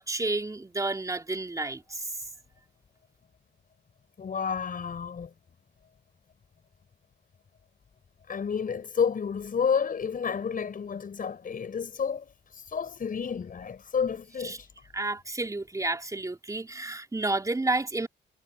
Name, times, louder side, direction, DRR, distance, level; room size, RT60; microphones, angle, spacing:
voice 1, 0.0-2.0 14.4-14.6 14.9-18.1, right 2 dB, 15° right, 4.0 m, -30 dB
voice 2, 4.2-5.3 8.3-14.7, left 6 dB, 45° left, 5.3 m, -30 dB
cardioid pair, 90°, 20 cm